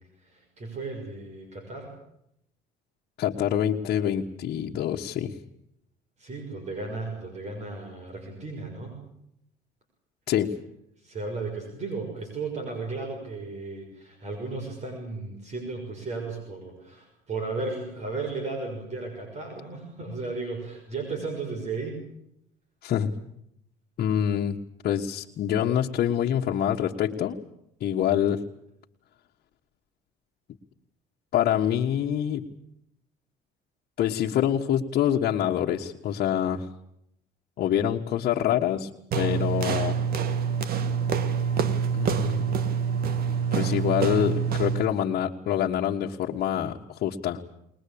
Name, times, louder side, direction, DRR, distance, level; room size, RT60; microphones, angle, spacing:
voice 1, 0.2-1.9 6.2-9.0 11.0-22.0, right 3 dB, 40° right, 3 dB, 6.5 m, -35 dB
voice 2, 3.2-5.3 10.3-10.5 22.8-23.1 24.0-27.3 27.8-28.4 31.3-32.5 34.0-36.7 37.6-38.9 39.1-40.0 41.9-42.5 43.5-47.4, left 10 dB, 65° left, -1 dB, 1.5 m, -26 dB
sound 1, 39.1-44.9, right 6 dB, 65° right, 1.9 m, -26 dB
21.5 x 21.0 x 8.7 m, 0.77 s
cardioid pair, 110°, 17 cm